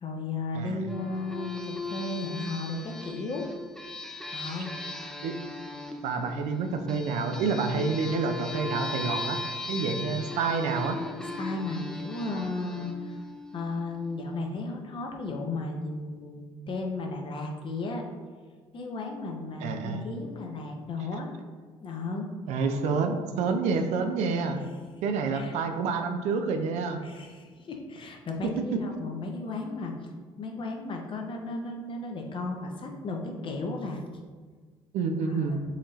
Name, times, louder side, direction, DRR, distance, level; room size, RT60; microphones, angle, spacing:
voice 1, 0.0-3.5 4.3-4.7 9.7-9.8 11.4-13.1 13.5-18.0 18.7-21.3 21.8-22.3 25.3-25.5 27.0-29.9 30.4-34.0 35.3-35.6, left 2 dB, 45° left, 2 dB, 0.7 m, -34 dB
sound 1, 0.9-14.1, left 2 dB, 5° left, 0.4 m, -38 dB
voice 2, 6.0-9.4 9.7-11.0 19.6-20.0 22.5-24.6 25.0-27.0 28.4-28.8 34.9-35.6, right 4 dB, 75° right, 6 dB, 0.4 m, -28 dB
4.0 x 2.6 x 3.1 m, 1.5 s
supercardioid pair, 65°, 12 cm